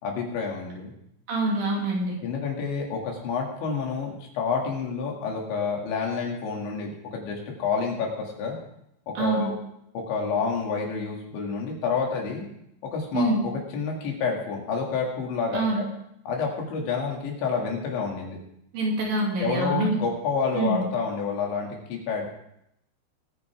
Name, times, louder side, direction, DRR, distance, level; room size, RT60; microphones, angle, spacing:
voice 1, 0.0-0.9 2.2-8.6 9.1-9.5 9.9-12.5 12.8-15.9 16.3-18.4 19.4-22.3, left 5 dB, 85° left, 0 dB, 4.8 m, -29 dB
voice 2, 1.3-2.2 9.2-9.5 13.1-13.4 15.5-15.8 18.7-20.0 20.5-20.8, right 2 dB, 55° right, -2 dB, 4.3 m, -25 dB
21.0 x 9.5 x 3.6 m, 0.77 s
omnidirectional pair, 5.1 m